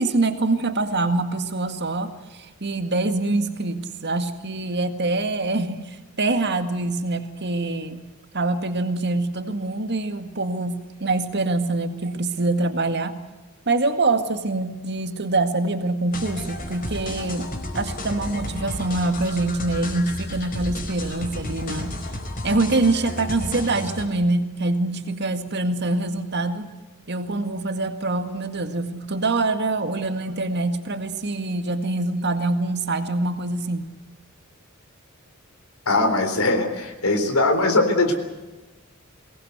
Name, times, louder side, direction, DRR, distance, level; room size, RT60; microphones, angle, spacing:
voice 1, 0.0-8.0 8.3-13.2 13.7-17.5 17.7-22.0 22.4-26.7 27.1-33.9, right 2 dB, 55° right, 8 dB, 2.0 m, -25 dB
sound 1, 16.1-24.1, left 1 dB, 45° left, 4.5 m, -32 dB
voice 2, 35.9-38.2, left 2 dB, 90° left, 5 dB, 3.8 m, -20 dB
22.5 x 18.5 x 8.1 m, 1.2 s
head